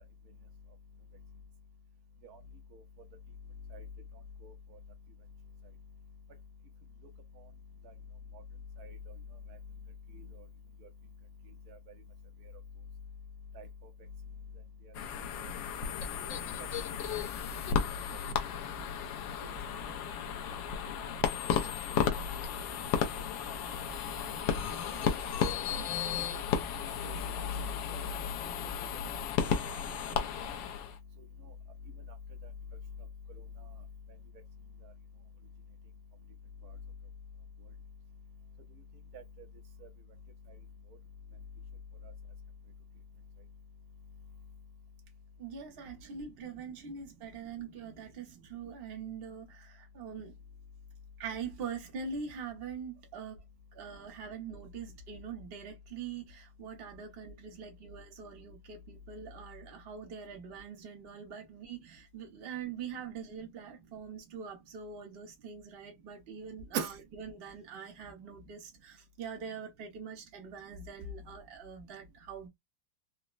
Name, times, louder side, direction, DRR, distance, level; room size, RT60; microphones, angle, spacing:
sound 1, 14.9-31.0, left 7 dB, 80° left, 1.3 m, -34 dB
voice 1, 26.0-26.4 26.9-28.3 39.1-39.2 39.8-39.9 66.7-66.9, right 1 dB, 65° right, 1.0 m, -40 dB
voice 2, 45.4-50.3 51.2-53.4 53.7-66.8 67.3-72.5, right 6 dB, 40° right, 0.9 m, -43 dB
4.1 x 2.1 x 2.3 m
omnidirectional pair, 2.0 m